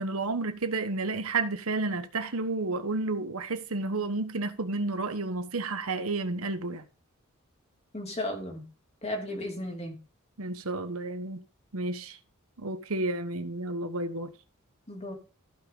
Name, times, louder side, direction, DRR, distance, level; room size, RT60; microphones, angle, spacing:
voice 1, 0.0-6.8 10.4-11.4 11.7-12.2 12.6-14.3, right 3 dB, 75° right, 1.2 m, -31 dB
voice 2, 7.9-8.7 9.0-10.0 14.9-15.1, left 1 dB, 30° left, 2.8 m, -34 dB
15.0 x 5.3 x 3.8 m
head